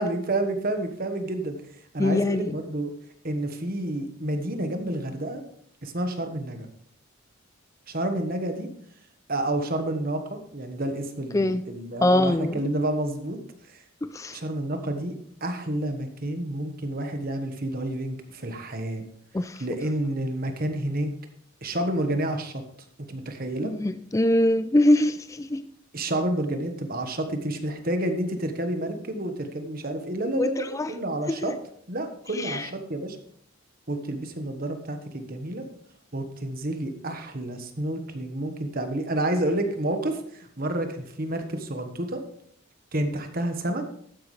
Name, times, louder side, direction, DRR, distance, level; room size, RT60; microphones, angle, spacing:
voice 1, 0.0-1.6 1.9-2.9 3.2-5.4 5.8-6.7 7.9-8.7 9.3-13.4 13.7-13.8 14.3-15.1 15.4-19.0 19.6-21.1 21.6-22.6 23.0-23.7 25.9-31.6 31.9-33.2 33.9-35.7 36.1-42.2 42.9-43.9, right 1 dB, 40° right, 6 dB, 1.3 m, -29 dB
voice 2, 2.0-2.5 11.3-11.6 12.0-12.6 14.0-14.4 19.3-19.6 23.6-25.6 30.4-30.9 31.3-31.5 32.3-32.7, left 1 dB, 15° left, 11 dB, 0.3 m, -23 dB
12.5 x 9.7 x 3.3 m, 0.63 s
head